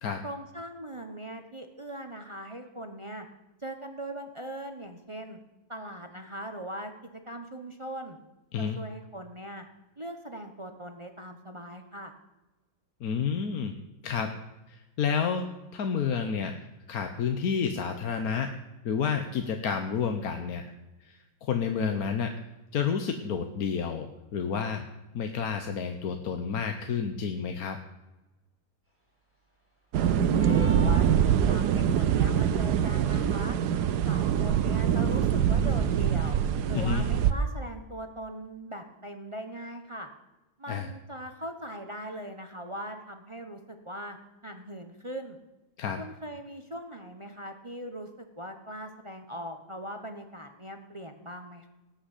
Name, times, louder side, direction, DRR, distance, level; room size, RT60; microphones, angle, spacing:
voice 1, 0.2-3.3 3.6-5.4 5.7-6.9 7.3-8.2 8.6-9.7 10.0-12.1 30.2-31.1 31.5-33.6 34.0-36.4 36.6-40.1 40.6-44.2 44.4-45.4 46.0-51.7, right 1 dB, 25° right, 6 dB, 0.9 m, -40 dB
voice 2, 13.0-13.7 14.0-14.3 14.7-16.6 16.9-18.5 18.8-20.6 21.0-22.3 22.7-24.8 25.1-27.8 36.7-37.0 40.7-40.9 45.8-46.0, left 6 dB, 65° left, 6 dB, 1.4 m, -30 dB
sound 1, 29.9-37.3, right 9 dB, 75° right, 1.3 m, -24 dB
sound 2, 30.3-31.8, right 5 dB, 5° left, 3.8 m, -42 dB
18.0 x 6.2 x 8.2 m, 1.1 s
omnidirectional pair, 1.7 m